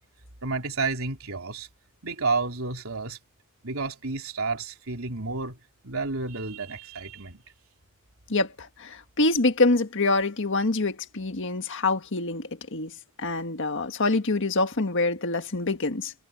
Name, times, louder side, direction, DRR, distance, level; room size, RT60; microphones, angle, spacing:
voice 1, 0.4-1.7 2.0-3.2 3.6-5.6 5.8-7.4, right 3 dB, 75° right, 3.7 m, -30 dB
voice 2, 8.3-16.1, left 2 dB, 60° left, 1.7 m, -26 dB
head